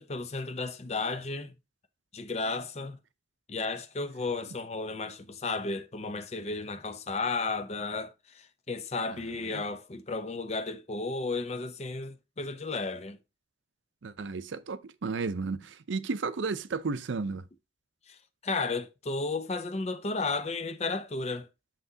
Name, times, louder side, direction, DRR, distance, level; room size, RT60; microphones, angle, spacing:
voice 1, 0.0-1.5 2.1-3.0 3.5-13.2 18.1-18.2 18.4-21.5, left 3 dB, 35° left, 0.6 m, -33 dB
voice 2, 14.0-17.5, right 4 dB, 80° right, 0.5 m, -33 dB
6.6 x 5.8 x 2.7 m
head